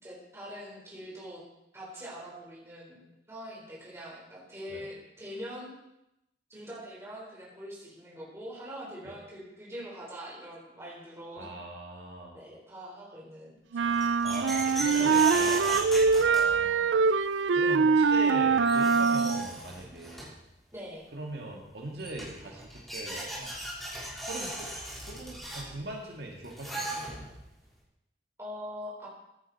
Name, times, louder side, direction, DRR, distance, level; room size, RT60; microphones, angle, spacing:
voice 1, 0.0-1.4 1.7-3.0 3.3-5.7 6.5-11.5 12.3-14.0 14.7-15.5 20.7-21.1 28.4-29.1, equal, 15° right, -5 dB, 4.2 m, -43 dB
voice 2, 11.4-12.4 14.2-15.8 16.2-17.0 17.5-20.3 21.1-23.5 24.2-24.7 25.0-27.3, right 2 dB, 65° right, -1 dB, 1.8 m, -41 dB
sound 1, 13.7-19.5, right 5 dB, 85° right, 0.4 m, -24 dB
sound 2, 13.8-16.9 18.2-18.3 18.6-20.4 21.6-21.7 22.0-27.5, right 1 dB, ahead, 3.7 m, -38 dB
15.0 x 10.5 x 4.2 m, 0.87 s
head